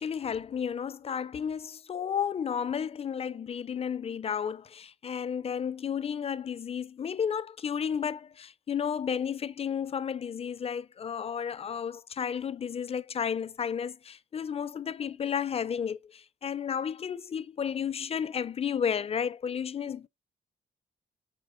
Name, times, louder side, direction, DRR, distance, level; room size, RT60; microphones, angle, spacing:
voice 1, 0.0-20.1, left 7 dB, 30° left, 0.4 m, -32 dB
7.4 x 5.2 x 2.5 m
wide cardioid pair, 160°, 20 cm